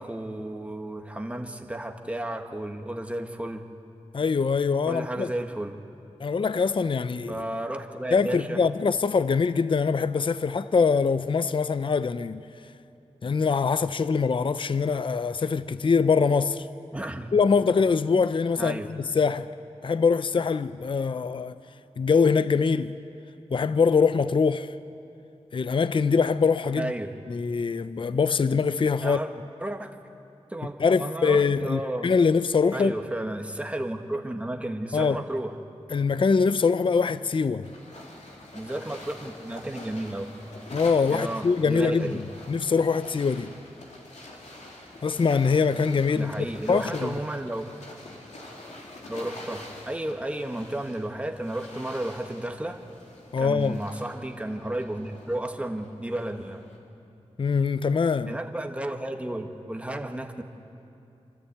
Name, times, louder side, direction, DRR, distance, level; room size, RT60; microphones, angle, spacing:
voice 1, 0.0-3.6 4.8-5.8 7.3-8.6 16.9-17.3 18.6-18.9 26.8-27.1 29.0-29.3 29.6-29.9 30.5-32.1 32.7-35.5 38.5-40.3 41.1-42.2 46.1-47.7 49.1-52.8 53.4-56.6 58.3-60.4, right 1 dB, 10° right, 1.4 m, -32 dB
voice 2, 4.1-5.3 6.2-7.4 8.1-12.4 13.2-16.7 17.3-19.5 19.8-21.5 22.0-22.9 23.5-24.7 25.5-26.9 27.3-29.2 30.8-32.9 34.9-35.2 35.9-37.7 40.7-43.5 45.0-47.1 53.3-53.8 57.4-58.3, left 5 dB, 45° left, 0.5 m, -23 dB
sound 1, 37.6-56.8, left 1 dB, 85° left, 2.9 m, -45 dB
26.0 x 13.5 x 8.5 m
wide cardioid pair, 85°, 12 cm